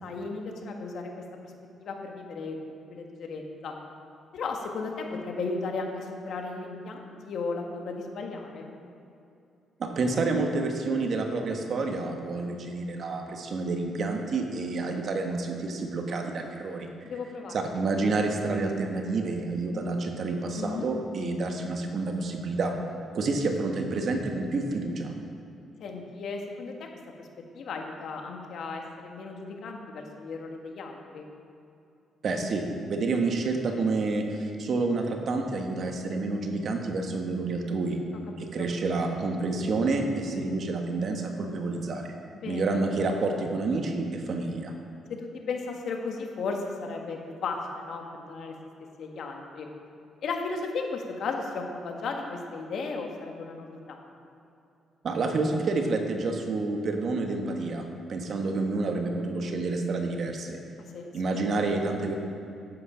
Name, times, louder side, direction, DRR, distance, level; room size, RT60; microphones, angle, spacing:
voice 1, 0.0-1.5 1.8-3.7 4.3-8.7 17.0-17.5 20.6-20.9 25.8-26.9 27.2-27.3 27.5-31.3 38.4-38.7 42.3-42.6 45.1-48.5 49.0-49.7 50.2-54.0 60.9-61.1, left 4 dB, 65° left, 2 dB, 1.6 m, -35 dB
voice 2, 9.8-16.9 17.5-22.7 23.1-25.1 32.2-38.0 38.4-42.1 42.5-44.7 55.0-60.6 61.1-62.1, right 3 dB, 55° right, 3 dB, 1.5 m, -29 dB
11.5 x 8.7 x 5.1 m, 2.7 s
cardioid pair, 90°, 0 cm